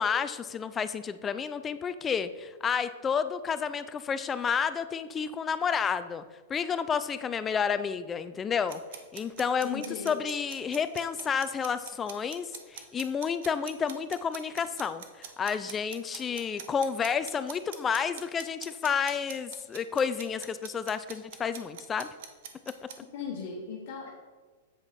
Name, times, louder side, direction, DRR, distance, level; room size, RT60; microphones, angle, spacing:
voice 1, 0.0-6.2 6.5-8.8 9.1-22.1, left 6 dB, 20° left, 12 dB, 0.3 m, -30 dB
sound 1, 8.7-23.0, right 9 dB, 65° right, 0.8 m, -44 dB
voice 2, 9.6-10.1 23.1-24.1, left 6 dB, 60° left, -2 dB, 1.2 m, -37 dB
7.9 x 4.8 x 4.2 m, 1.4 s
hypercardioid pair, 130°, 0 cm